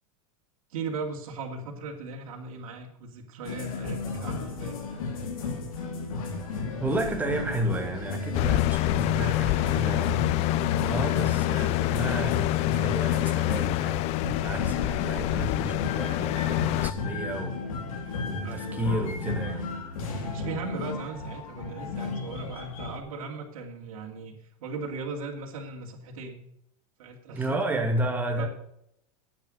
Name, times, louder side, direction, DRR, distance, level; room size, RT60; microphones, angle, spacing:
voice 1, 0.7-4.7 9.4-10.1 18.4-19.1 20.2-26.4 27.0-27.8 28.4-28.5, right 4 dB, 80° right, 0 dB, 2.7 m, -38 dB
sound 1, 3.4-23.0, left 3 dB, 85° left, 3.5 m, -34 dB
voice 2, 6.8-10.4 10.8-17.6 18.2-19.7 27.4-28.5, right 1 dB, 10° right, 3 dB, 2.3 m, -32 dB
sound 2, 8.3-16.9, left 18 dB, 40° left, 0.5 m, -26 dB
10.5 x 8.7 x 6.4 m, 0.74 s
supercardioid pair, 145°, 18 cm